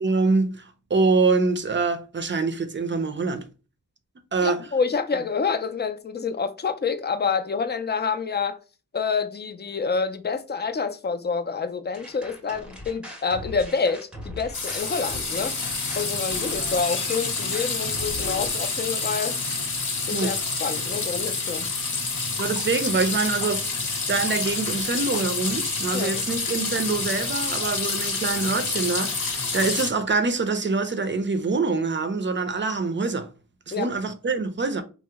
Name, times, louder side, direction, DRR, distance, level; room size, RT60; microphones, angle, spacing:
voice 1, 0.0-3.4 4.3-4.6 20.1-20.3 22.4-33.3 33.7-34.8, right 3 dB, 35° right, 0.5 m, -25 dB
voice 2, 4.4-8.6 8.9-15.5 16.0-19.4 20.1-21.7 25.9-26.2 33.7-33.9, left 5 dB, 30° left, 0.4 m, -27 dB
sound 1, 11.9-18.5, left 1 dB, 5° right, 0.7 m, -39 dB
sound 2, 14.5-29.9, left 3 dB, 65° left, 0.9 m, -28 dB
2.8 x 2.0 x 3.4 m
wide cardioid pair, 80°, 33 cm